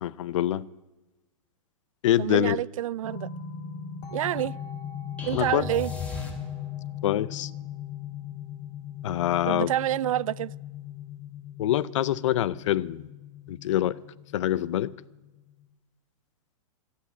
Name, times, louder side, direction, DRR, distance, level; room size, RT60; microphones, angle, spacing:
voice 1, 0.0-0.7 2.0-2.6 5.3-5.6 7.0-7.5 9.0-9.7 11.6-13.1 13.5-14.0 14.3-14.9, left 12 dB, 60° left, 0.6 m, -25 dB
voice 2, 2.2-3.3 4.1-4.6 5.2-5.9 9.5-10.5, right 13 dB, 70° right, 0.4 m, -28 dB
sound 1, 3.0-15.6, left 9 dB, 35° left, 2.3 m, -39 dB
sound 2, 5.2-6.9, left 3 dB, 5° left, 2.6 m, -36 dB
13.0 x 12.5 x 7.1 m
hypercardioid pair, 145°, 18 cm